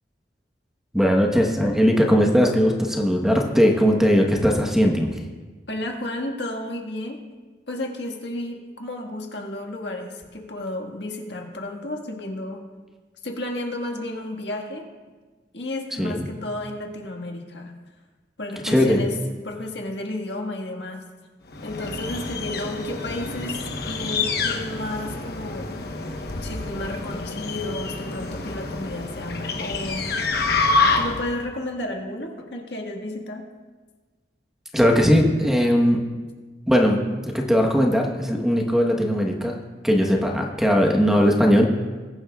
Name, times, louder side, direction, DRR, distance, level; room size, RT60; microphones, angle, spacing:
voice 1, 0.9-5.1 16.0-16.2 18.6-19.0 34.7-36.0 36.7-39.6 39.8-41.7, equal, 5° right, 1 dB, 1.1 m, -19 dB
voice 2, 5.7-7.2 7.7-12.6 13.2-14.9 15.5-17.7 18.4-19.2 19.4-21.0 21.6-25.8 26.4-30.1 31.0-33.5, left 1 dB, 75° left, 1 dB, 1.7 m, -32 dB
sound 1, 21.5-31.4, left 3 dB, 60° left, 1.1 m, -27 dB
21.0 x 10.0 x 2.4 m, 1.4 s
head